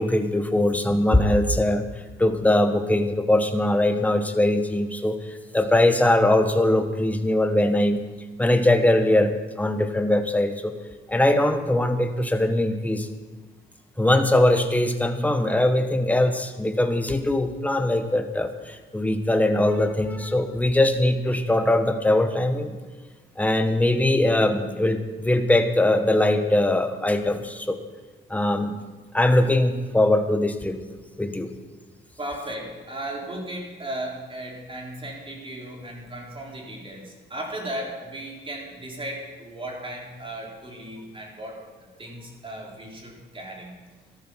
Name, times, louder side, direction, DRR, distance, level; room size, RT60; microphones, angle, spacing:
voice 1, 0.0-1.8 2.2-8.0 8.4-10.7 11.1-13.1 14.0-22.8 23.4-27.8 28.3-28.7 29.1-30.8 31.2-31.5, left 1 dB, 5° left, 7 dB, 1.3 m, -21 dB
voice 2, 32.2-41.6 42.0-43.7, right 1 dB, 25° right, -1 dB, 4.0 m, -36 dB
13.0 x 12.0 x 5.8 m, 1.3 s
cardioid pair, 90°, 20 cm